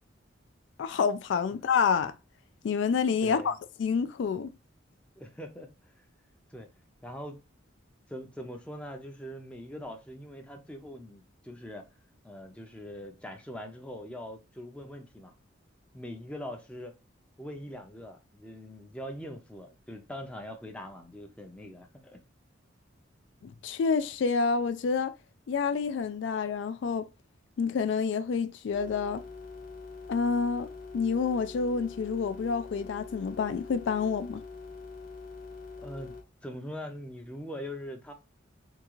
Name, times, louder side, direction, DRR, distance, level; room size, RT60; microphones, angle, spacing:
voice 1, 0.8-2.1 2.6-3.5 3.8-4.5 23.4-25.1 25.5-27.1 27.6-29.2 30.1-30.7 30.9-34.4, left 5 dB, 65° left, 0.3 m, -28 dB
voice 2, 3.2-3.6 5.2-6.0 6.5-6.7 7.0-7.4 8.1-11.9 12.2-15.3 15.9-17.0 17.4-22.2 35.8-36.1 36.4-38.1, equal, 5° left, 0.5 m, -42 dB
sound 1, 28.7-36.2, left 4 dB, 45° left, 0.8 m, -44 dB
3.6 x 2.3 x 3.0 m
head